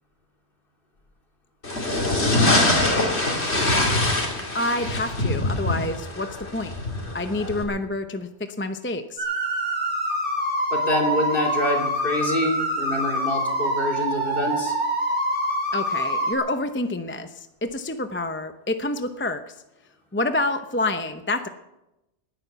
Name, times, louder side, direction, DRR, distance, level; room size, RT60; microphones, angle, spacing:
sound 1, 1.6-7.6, left 2 dB, 75° left, 3.2 m, -23 dB
voice 1, 4.5-6.7 7.1-9.2 15.7-19.5 20.1-21.5, left 2 dB, 10° left, 8 dB, 0.7 m, -28 dB
sound 2, 9.2-16.3, equal, 50° right, 4.3 m, -25 dB
voice 2, 10.7-14.7, left 1 dB, 55° left, 0 dB, 3.6 m, -26 dB
19.5 x 10.5 x 7.0 m, 0.92 s
omnidirectional pair, 1.1 m